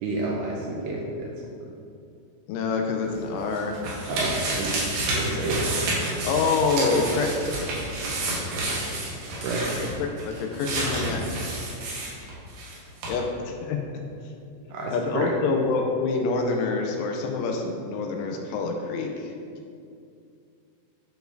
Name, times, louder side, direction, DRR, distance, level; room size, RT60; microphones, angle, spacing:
voice 1, 0.0-1.3 4.1-5.8 8.6-8.7 9.4-9.6 14.7-15.3, right 2 dB, 85° right, -3 dB, 2.4 m, -30 dB
voice 2, 2.5-3.8 6.0-7.7 9.8-11.2 13.1-13.8 14.9-19.3, left 4 dB, 85° left, 2 dB, 2.9 m, -26 dB
sound 1, 3.1-12.8 13.0-13.1, right 2 dB, 65° right, 2.8 m, -30 dB
11.5 x 4.5 x 2.6 m, 2.4 s
omnidirectional pair, 5.5 m